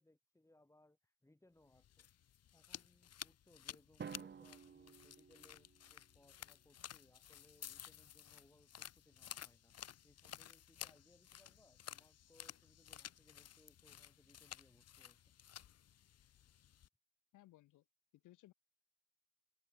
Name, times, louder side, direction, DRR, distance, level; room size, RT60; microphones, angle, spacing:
voice 1, 0.0-2.1 2.5-15.3, left 1 dB, 10° left, 5.2 m, -70 dB
sound 1, 1.7-16.9, left 10 dB, 55° left, 1.1 m, -54 dB
Drum, 4.0-6.0, right 6 dB, 35° right, 1.2 m, -52 dB
voice 2, 17.3-17.8 18.2-18.5, left 16 dB, 85° left, 1.6 m, -62 dB
cardioid pair, 90°, 30 cm